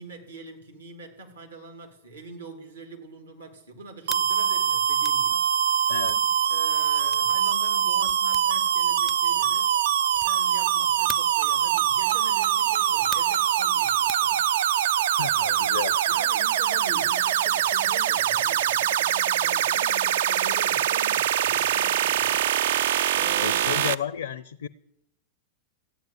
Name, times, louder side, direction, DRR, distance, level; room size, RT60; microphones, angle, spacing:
voice 1, 0.0-6.1 6.5-9.7 10.2-14.7 16.1-22.4 23.1-23.6, right 3 dB, 75° right, 3 dB, 2.5 m, -43 dB
sound 1, 4.0-4.3 5.0-5.2 6.0-6.2 7.1-7.3 8.1-8.5 9.0-9.4 10.1-10.4 11.1-11.4 12.0-12.3 13.1-13.4 14.1-14.3, left 2 dB, 10° left, 0.4 m, -40 dB
sound 2, 4.1-23.9, right 10 dB, 55° right, 0.4 m, -23 dB
voice 2, 5.9-6.2 15.2-16.0 23.4-24.7, left 9 dB, 65° left, 15 dB, 0.5 m, -32 dB
14.5 x 9.2 x 7.5 m, 0.80 s
figure-of-eight pair, 90°, 0 cm